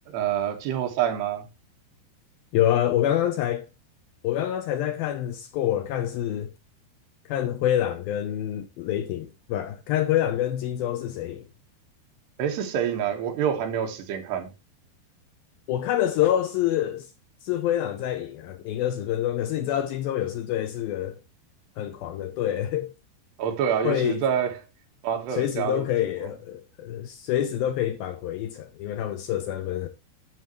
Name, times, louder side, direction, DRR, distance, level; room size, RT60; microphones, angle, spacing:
voice 1, 0.1-1.5 12.4-14.5 23.4-24.6 25.0-26.1, right 8 dB, 75° right, 3.5 m, -27 dB
voice 2, 2.5-3.7 4.2-6.5 7.3-11.4 15.7-17.1 17.4-21.2 21.8-22.9 23.8-24.2 25.3-29.9, left 11 dB, 75° left, 2.2 m, -26 dB
11.0 x 7.3 x 3.0 m
omnidirectional pair, 4.9 m